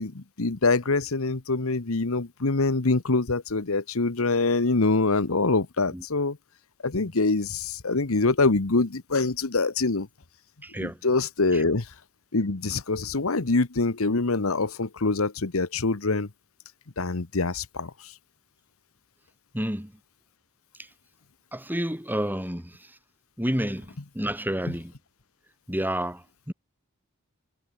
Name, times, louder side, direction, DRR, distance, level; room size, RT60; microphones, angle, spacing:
voice 1, 0.0-6.4 6.8-10.1 10.8-11.9 12.3-16.3 17.0-17.9, left 3 dB, 75° left, 1.2 m, -25 dB
voice 2, 10.6-11.0 11.5-11.6 19.5-19.9 21.5-22.8 23.4-24.9 25.7-26.5, equal, 10° right, 6.4 m, -30 dB
head